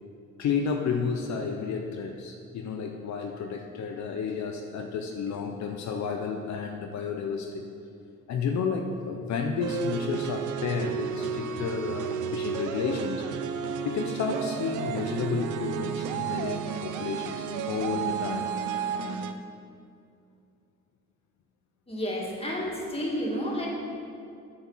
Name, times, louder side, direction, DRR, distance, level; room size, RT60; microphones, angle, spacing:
voice 1, 0.4-7.6 8.3-13.3 13.8-18.5, left 5 dB, 65° left, 3 dB, 0.7 m, -31 dB
sound 1, 9.6-19.3, right 7 dB, 80° right, 0.6 m, -32 dB
voice 2, 21.9-23.7, equal, 20° left, -3 dB, 2.2 m, -31 dB
8.2 x 6.8 x 5.6 m, 2.5 s
cardioid pair, 90°, 30 cm